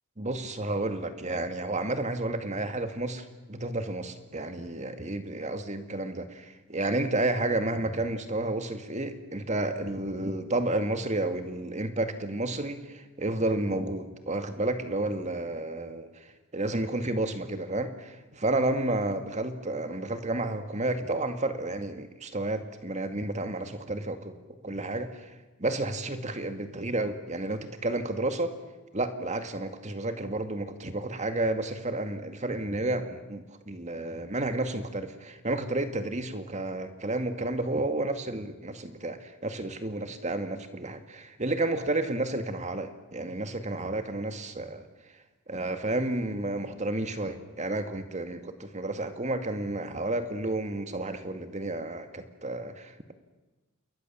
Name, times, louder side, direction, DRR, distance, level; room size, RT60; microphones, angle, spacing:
voice 1, 0.2-24.4 24.6-25.3 25.6-28.5 28.9-44.8 45.5-53.1, right 2 dB, 30° right, 8 dB, 2.0 m, -31 dB
28.5 x 22.0 x 7.4 m, 1.2 s
head